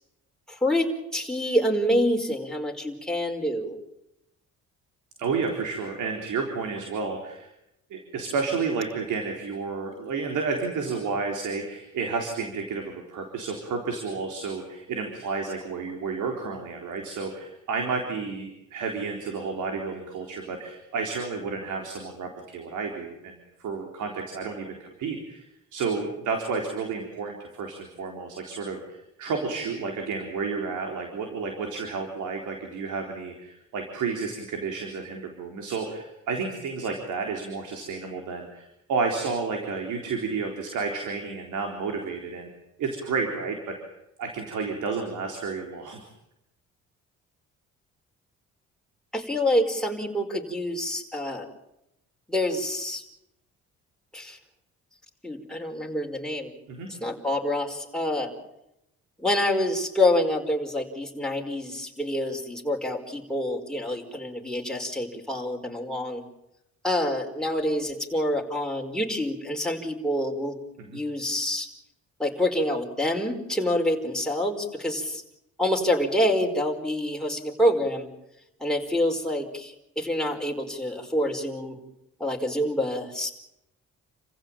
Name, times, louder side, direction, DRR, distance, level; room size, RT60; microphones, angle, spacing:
voice 1, 0.5-3.8 49.1-51.5 52.3-53.0 54.1-54.4 55.2-56.5 57.0-58.3 59.2-66.2 66.8-70.5 70.9-71.7 72.2-75.2 75.6-78.1 78.6-81.8 82.2-83.3, left 1 dB, ahead, 1 dB, 4.9 m, -27 dB
voice 2, 5.2-7.5 7.9-25.5 25.7-42.5 42.8-43.8 44.2-46.0 56.7-56.9 70.8-71.0, right 4 dB, 80° right, 3 dB, 4.1 m, -31 dB
29.0 x 15.5 x 9.0 m, 0.85 s
cardioid pair, 90°, 30 cm